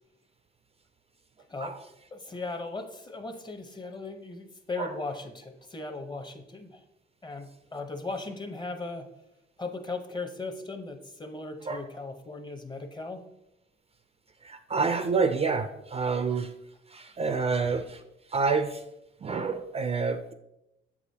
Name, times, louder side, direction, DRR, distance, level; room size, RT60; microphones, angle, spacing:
voice 1, 2.1-6.8 7.2-9.1 9.6-13.2, left 3 dB, 20° left, 6 dB, 0.7 m, -37 dB
voice 2, 14.4-16.5 16.9-18.0 18.3-18.8 19.2-20.3, right 4 dB, 30° right, 9 dB, 0.4 m, -28 dB
7.3 x 4.9 x 2.7 m, 0.87 s
cardioid pair, 90°, 20 cm